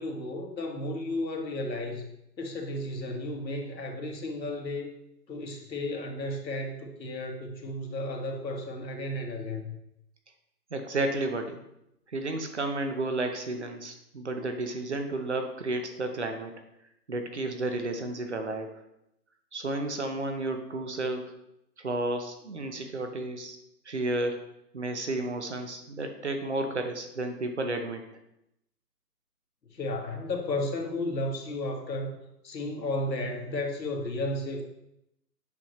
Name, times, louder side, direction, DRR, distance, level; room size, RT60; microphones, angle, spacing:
voice 1, 0.0-2.1 2.4-4.9 5.3-9.7 29.7-32.2 32.4-34.7, left 1 dB, 90° left, 2 dB, 1.6 m, -33 dB
voice 2, 10.7-11.6 12.1-16.5 17.1-18.7 19.5-21.3 21.8-23.6 23.9-24.4 24.7-28.0, right 2 dB, 45° right, 6 dB, 0.8 m, -32 dB
7.5 x 5.7 x 3.1 m, 0.82 s
hypercardioid pair, 180°, 49 cm